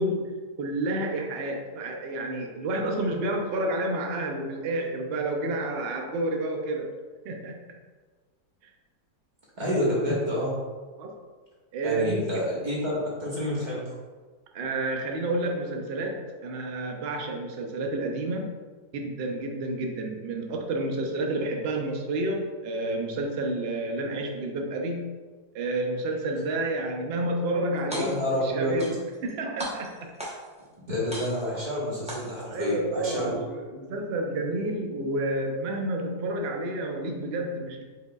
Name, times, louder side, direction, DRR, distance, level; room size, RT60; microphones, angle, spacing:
voice 1, 0.0-6.9 7.2-7.6 11.0-11.1 11.7-12.5 14.5-18.5 18.9-25.1 25.5-30.1 32.5-37.8, right 1 dB, 75° right, 2 dB, 0.5 m, -30 dB
voice 2, 9.6-10.5 11.8-13.9 27.9-28.7 30.7-33.3, equal, 30° right, -6 dB, 1.2 m, -28 dB
sound 1, 27.8-28.4 28.8-29.3 29.6-30.6 31.1-31.6 32.1-32.6, equal, 10° right, 0.3 m, -37 dB
4.9 x 4.4 x 2.3 m, 1.4 s
omnidirectional pair, 1.7 m